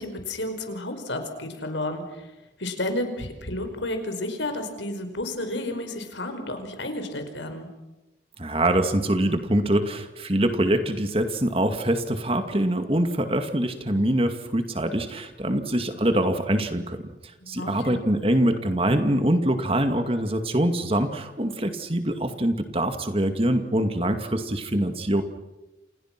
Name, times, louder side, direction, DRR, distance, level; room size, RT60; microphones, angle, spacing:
voice 1, 0.0-2.3 2.6-7.7 17.4-18.1, left 1 dB, 85° left, 7 dB, 5.2 m, -31 dB
voice 2, 8.4-17.0 17.5-25.2, right 1 dB, 30° right, 7 dB, 2.3 m, -24 dB
29.5 x 28.5 x 6.1 m, 1.0 s
head